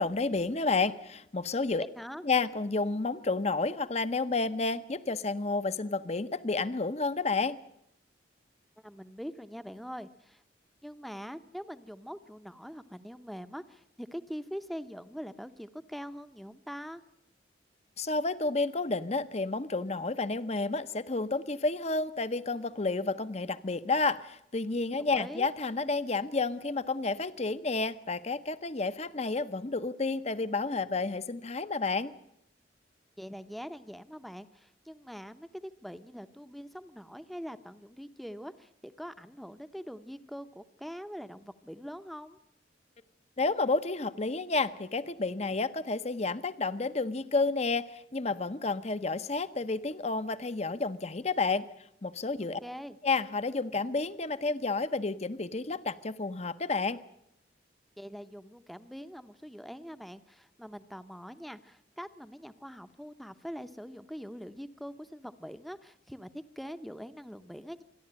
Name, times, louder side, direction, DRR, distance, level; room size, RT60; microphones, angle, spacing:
voice 1, 0.0-1.8 2.2-7.6 18.0-32.1 43.4-51.6 52.0-52.6 53.0-57.0, left 3 dB, 35° left, 13 dB, 0.8 m, -30 dB
voice 2, 1.8-2.2 8.8-10.4 10.8-17.0 25.0-25.5 33.2-42.4 52.6-53.0 58.0-67.8, equal, ahead, 10 dB, 0.8 m, -43 dB
27.0 x 11.5 x 8.7 m, 0.76 s
head